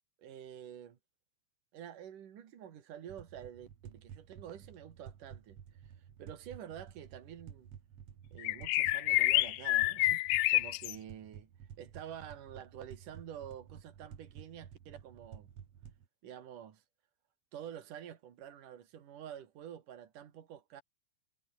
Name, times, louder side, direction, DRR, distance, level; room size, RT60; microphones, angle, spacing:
voice 1, 0.2-1.0 1.7-7.7 8.3-11.5 11.8-15.5 16.2-16.8 17.5-20.8, right 9 dB, 75° right, 3.8 m, -48 dB
sound 1, 3.1-16.1, right 8 dB, 55° right, 2.8 m, -53 dB
sound 2, 8.4-11.0, left 18 dB, 75° left, 1.9 m, -28 dB
omnidirectional pair, 3.7 m